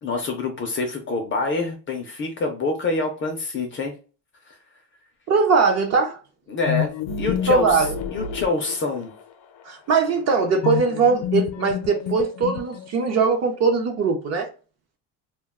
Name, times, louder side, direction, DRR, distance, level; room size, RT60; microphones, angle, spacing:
voice 1, 0.0-3.9 4.5-4.6 6.5-6.9 7.2-7.8 8.1-9.1, left 3 dB, 30° left, 0.4 m, -26 dB
voice 2, 5.3-6.2 7.5-7.9 9.7-14.5, right 4 dB, 40° right, 0.4 m, -20 dB
sound 1, 6.7-9.2 10.6-13.1, left 9 dB, 75° left, 0.6 m, -28 dB
2.2 x 2.2 x 3.5 m
cardioid pair, 175°, 43 cm